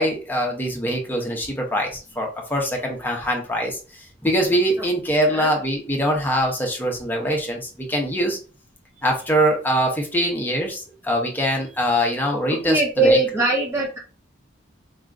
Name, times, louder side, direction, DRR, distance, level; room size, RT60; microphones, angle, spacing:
voice 1, 0.0-3.8 4.2-8.4 9.0-13.2, equal, 10° left, 0 dB, 1.0 m, -23 dB
voice 2, 5.2-5.5 12.6-14.0, right 2 dB, 15° right, -3 dB, 0.6 m, -21 dB
4.7 x 2.9 x 2.5 m, 0.35 s
head